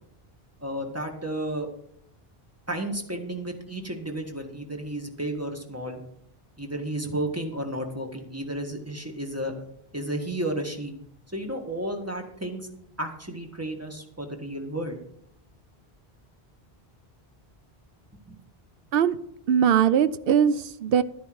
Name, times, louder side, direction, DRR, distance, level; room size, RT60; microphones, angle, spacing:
voice 1, 0.6-1.7 2.7-6.0 6.6-9.5 9.9-10.9 11.3-12.7 13.0-15.0 18.3-18.4, right 1 dB, 15° right, 3 dB, 1.7 m, -32 dB
voice 2, 19.5-21.0, right 8 dB, 65° right, 15 dB, 0.8 m, -21 dB
12.0 x 10.5 x 4.7 m, 0.70 s
omnidirectional pair, 1.0 m